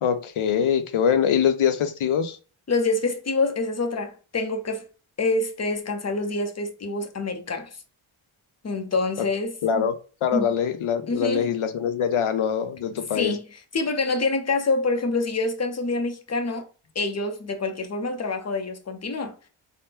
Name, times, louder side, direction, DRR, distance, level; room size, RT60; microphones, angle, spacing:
voice 1, 0.0-2.4 9.2-9.3 9.6-9.9 10.2-13.3, left 8 dB, 75° left, 0.6 m, -23 dB
voice 2, 2.7-4.8 5.2-7.8 8.6-9.9 10.3-10.5 11.1-11.5 13.1-13.5 13.7-16.7 16.9-19.4, left 3 dB, 30° left, 0.6 m, -26 dB
3.5 x 2.1 x 2.8 m
cardioid pair, 70°, 50 cm